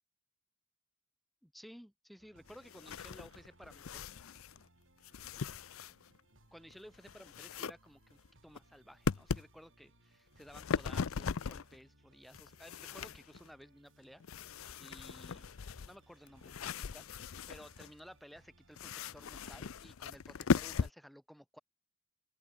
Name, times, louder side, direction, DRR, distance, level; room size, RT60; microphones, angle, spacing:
voice 1, 1.4-4.0 6.5-15.5 15.9-17.1 17.5-21.6, equal, ahead, 4.2 m, -56 dB
sound 1, 2.2-19.5, right 2 dB, 60° right, 7.2 m, -67 dB
sound 2, 2.5-4.7 5.0-6.2 6.7-7.7 8.1-8.6 9.1-9.5 10.3-11.8 12.2-13.5 14.2-17.9 18.8-20.9, left 5 dB, 75° left, 0.5 m, -38 dB
open air
head